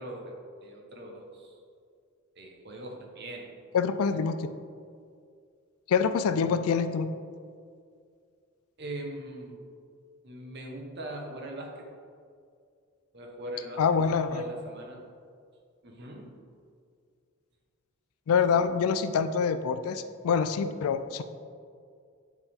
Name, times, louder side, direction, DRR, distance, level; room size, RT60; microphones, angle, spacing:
voice 1, 0.0-1.6 2.4-3.5 8.8-9.6 10.2-11.9 13.1-13.8 14.3-15.0 15.8-16.3, right 1 dB, 50° right, 1 dB, 0.9 m, -40 dB
voice 2, 3.7-4.5 5.9-7.1 13.8-14.4 18.3-21.2, left 6 dB, 75° left, 10 dB, 0.3 m, -26 dB
9.5 x 3.5 x 3.6 m, 2.2 s
head